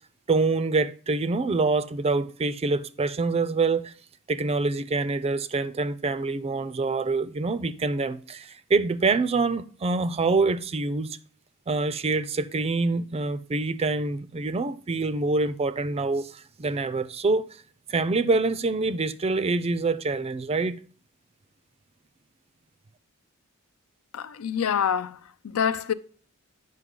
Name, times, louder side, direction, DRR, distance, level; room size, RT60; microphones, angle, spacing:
voice 1, 0.3-3.9 4.3-11.2 11.7-17.5 17.9-20.8, right 3 dB, 30° right, 0.4 m, -26 dB
voice 2, 24.1-25.2 25.4-25.9, left 8 dB, 75° left, 0.5 m, -26 dB
8.0 x 5.4 x 3.7 m
head